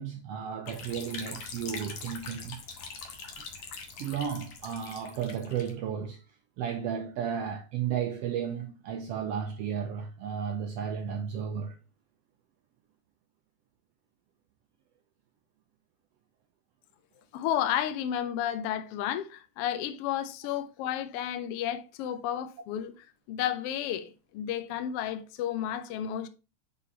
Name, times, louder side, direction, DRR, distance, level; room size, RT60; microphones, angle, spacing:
voice 1, 0.0-2.6 4.0-6.2 6.6-11.8, right 8 dB, 80° right, 1.4 m, -33 dB
sound 1, 0.7-5.7, left 5 dB, 60° left, 1.7 m, -43 dB
voice 2, 17.3-22.9 23.3-26.3, left 10 dB, 80° left, 1.3 m, -32 dB
6.2 x 4.1 x 4.1 m
omnidirectional pair, 3.4 m